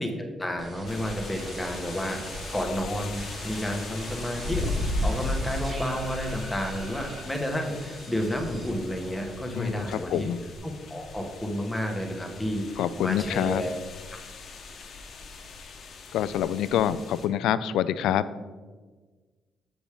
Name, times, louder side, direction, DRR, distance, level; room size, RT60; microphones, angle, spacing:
voice 1, 0.0-2.2 2.5-4.7 5.0-10.3 10.6-13.7, equal, 10° left, 2 dB, 1.3 m, -31 dB
sound 1, 0.6-2.6 3.1-9.7 10.0-10.6, right 1 dB, 45° right, 1.3 m, -42 dB
sound 2, 0.9-17.3, left 2 dB, 60° left, 1.0 m, -37 dB
voice 2, 9.5-10.4 12.8-13.6 16.1-18.2, left 10 dB, 85° left, 15 dB, 0.3 m, -26 dB
7.2 x 5.2 x 5.0 m, 1.4 s
cardioid pair, 90°, 0 cm